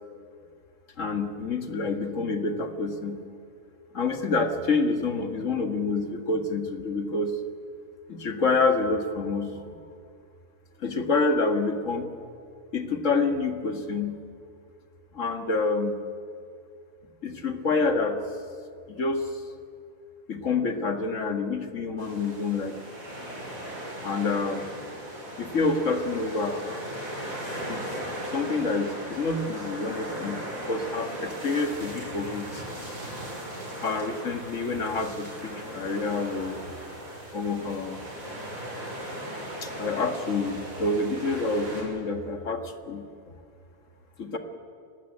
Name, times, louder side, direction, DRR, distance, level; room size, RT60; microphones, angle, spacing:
voice 1, 1.0-3.2 3.9-7.4 8.1-9.6 10.8-12.1 12.7-14.2 15.1-16.0 17.2-18.2 18.9-19.3 20.3-22.8 24.0-24.7 25.4-26.8 27.7-27.8 28.3-30.4 30.6-32.6 33.8-36.6 37.3-38.0 39.6-43.0 44.2-44.4, left 3 dB, 55° left, 6 dB, 2.0 m, -27 dB
sound 1, 22.0-41.8, right 1 dB, 60° right, 6.3 m, -38 dB
29.0 x 13.0 x 8.6 m, 2.3 s
omnidirectional pair, 1.6 m